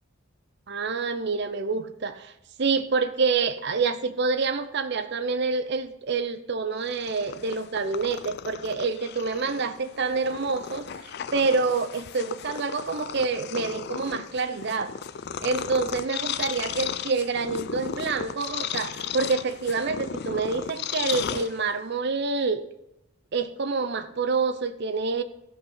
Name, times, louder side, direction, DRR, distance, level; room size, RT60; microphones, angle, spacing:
voice 1, 0.7-2.3 2.6-10.9 11.3-14.9 15.4-22.6 23.3-25.2, right 4 dB, 55° right, 11 dB, 0.6 m, -27 dB
Purr, 6.8-21.9, left 8 dB, 50° left, 0.4 m, -35 dB
14.5 x 5.6 x 5.5 m, 0.86 s
head